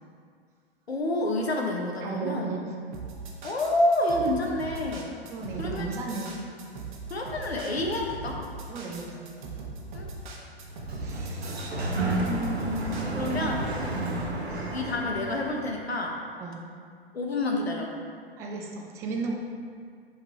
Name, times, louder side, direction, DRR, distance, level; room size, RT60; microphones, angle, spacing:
voice 1, 0.9-2.5 3.4-5.1 5.6-5.9 7.1-8.4 9.9-10.1 13.1-13.7 14.7-16.2 17.1-17.9, left 1 dB, 80° left, 1 dB, 0.8 m, -28 dB
voice 2, 2.0-2.7 5.3-6.4 8.7-9.2 11.0-11.5 12.2-13.5 14.0-14.3 16.4-16.6 18.4-19.3, right 3 dB, 10° right, -1 dB, 0.3 m, -34 dB
sound 1, 2.9-13.6, right 3 dB, 50° right, 1.2 m, -40 dB
Sliding door, 10.6-15.7, right 2 dB, 85° right, 1.1 m, -32 dB
7.4 x 3.6 x 4.4 m, 2.1 s
figure-of-eight pair, 105°, 31 cm